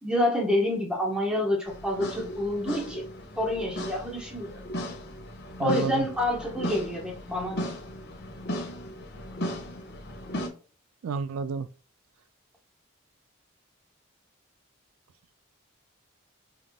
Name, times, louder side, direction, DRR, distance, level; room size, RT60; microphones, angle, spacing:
voice 1, 0.0-3.0 3.3-4.6 5.6-7.6, left 1 dB, 5° right, 1.2 m, -28 dB
sound 1, 1.7-10.5, equal, 50° left, 1.1 m, -36 dB
voice 2, 5.6-6.1 11.0-11.7, right 5 dB, 90° right, 0.3 m, -30 dB
5.6 x 3.4 x 2.3 m
head